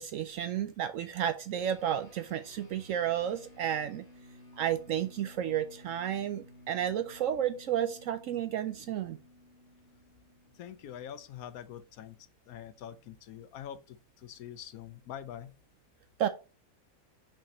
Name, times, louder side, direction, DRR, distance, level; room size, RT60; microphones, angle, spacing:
voice 1, 0.0-4.1 4.6-9.2 16.2-16.3, right 10 dB, 70° right, 0.9 m, -32 dB
sound 1, 1.6-11.2, left 1 dB, 25° left, 3.0 m, -56 dB
voice 2, 10.6-12.2 12.5-15.5, left 10 dB, 80° left, 1.1 m, -45 dB
6.1 x 5.0 x 4.1 m
omnidirectional pair, 1.5 m